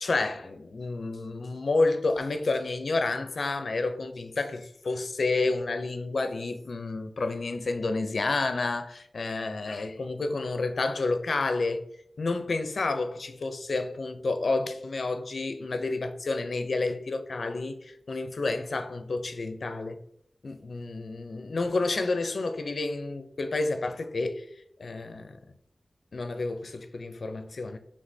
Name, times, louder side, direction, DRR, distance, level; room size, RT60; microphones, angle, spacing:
voice 1, 0.0-11.8 12.2-20.0 20.4-24.5 24.8-25.4 26.1-27.8, left 3 dB, 80° left, 0.5 m, -30 dB
5.2 x 3.3 x 2.7 m
wide cardioid pair, 65°, 0 cm